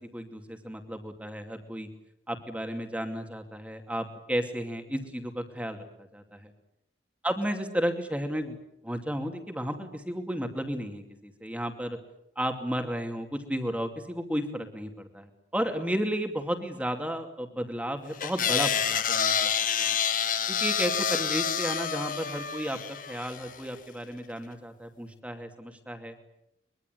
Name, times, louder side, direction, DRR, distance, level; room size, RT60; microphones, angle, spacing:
voice 1, 0.1-1.9 2.3-5.8 6.1-6.5 7.2-8.5 8.8-12.0 12.4-19.5 20.5-26.1, equal, 5° right, 5 dB, 2.6 m, -33 dB
sound 1, 18.2-23.6, left 7 dB, 45° left, 1.5 m, -28 dB
23.5 x 23.0 x 9.3 m, 0.80 s
head